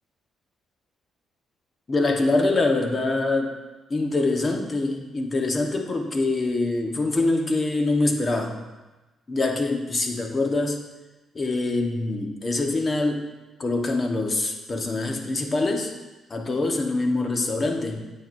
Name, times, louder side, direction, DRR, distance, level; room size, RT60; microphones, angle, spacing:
voice 1, 1.9-3.5 3.9-8.6 9.3-10.8 11.3-13.3 13.6-15.9 16.3-18.0, left 2 dB, 35° left, 3 dB, 1.1 m, -24 dB
9.3 x 8.7 x 2.6 m, 1.1 s
cardioid pair, 90°, 0 cm